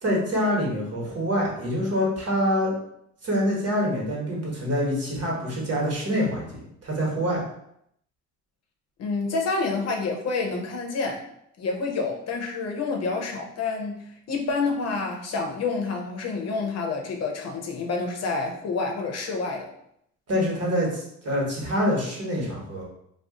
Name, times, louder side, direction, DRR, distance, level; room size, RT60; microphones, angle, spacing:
voice 1, 0.0-2.7 3.2-7.4 20.3-22.8, equal, 55° right, -3 dB, 1.3 m, -26 dB
voice 2, 9.0-11.2 11.6-19.7, left 4 dB, 55° left, 2 dB, 0.7 m, -28 dB
2.4 x 2.3 x 3.6 m, 0.73 s
cardioid pair, 90°, 30 cm